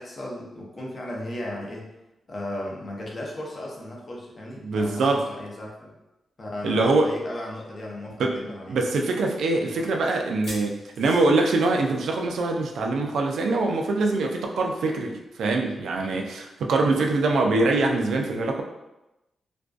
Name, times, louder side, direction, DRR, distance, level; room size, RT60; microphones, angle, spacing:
voice 1, 0.0-1.9 2.3-6.0 6.4-8.9, left 1 dB, 30° left, -3 dB, 0.5 m, -36 dB
voice 2, 4.6-5.2 6.6-7.1 8.2-8.4 8.7-18.6, right 3 dB, 85° right, 2 dB, 0.3 m, -23 dB
sound 1, 10.2-12.4 12.6-12.8 13.1-13.2 14.7-14.8, equal, 70° left, 1.0 m, -44 dB
2.4 x 2.2 x 2.3 m, 0.95 s
wide cardioid pair, 160°, 0 cm